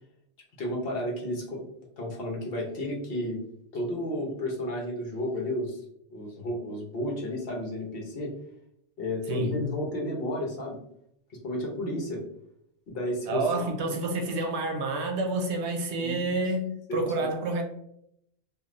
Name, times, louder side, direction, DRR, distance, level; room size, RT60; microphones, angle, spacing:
voice 1, 0.6-1.6 2.0-3.4 3.7-5.8 6.1-8.3 9.0-10.8 11.4-12.2 12.9-13.5 16.0-16.3 16.9-17.3, left 1 dB, 60° left, 1.0 m, -32 dB
voice 2, 9.3-9.7 13.3-17.6, right 2 dB, 80° right, 0.9 m, -29 dB
3.1 x 2.5 x 2.4 m
omnidirectional pair, 1.2 m